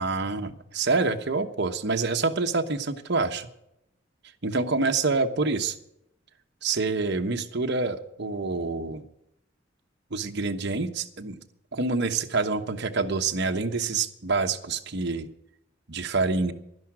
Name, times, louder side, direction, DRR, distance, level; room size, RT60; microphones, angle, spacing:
voice 1, 0.0-3.5 4.4-5.7 6.6-9.0 10.1-11.4 11.7-15.3 15.9-16.5, right 3 dB, 60° right, 6 dB, 1.1 m, -27 dB
12.0 x 11.0 x 7.4 m, 0.80 s
head